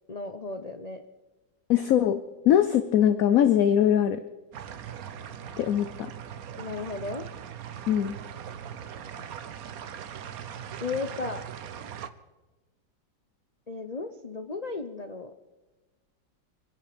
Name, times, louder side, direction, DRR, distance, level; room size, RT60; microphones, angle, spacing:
voice 1, 0.1-1.0 6.6-7.2 10.8-11.5 13.7-15.3, left 3 dB, 85° left, 7 dB, 0.3 m, -35 dB
voice 2, 1.7-4.2 5.6-6.1 7.9-8.1, left 10 dB, 65° left, 12 dB, 0.9 m, -22 dB
sound 1, 4.5-12.1, right 8 dB, 55° right, 1.1 m, -40 dB
25.5 x 11.0 x 5.1 m, 1.2 s
omnidirectional pair, 2.1 m